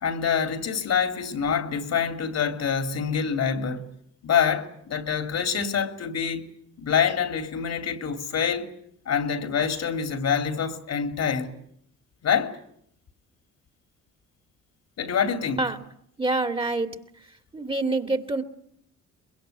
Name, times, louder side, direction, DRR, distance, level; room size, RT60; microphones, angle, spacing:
voice 1, 0.0-3.9 4.2-6.4 6.8-8.7 9.1-11.5 12.2-12.6 15.0-15.7, left 7 dB, 60° left, 3.0 m, -26 dB
voice 2, 16.2-17.0 17.5-18.4, right 2 dB, 15° right, 2.5 m, -26 dB
24.5 x 21.5 x 9.4 m
cardioid pair, 90°, 30 cm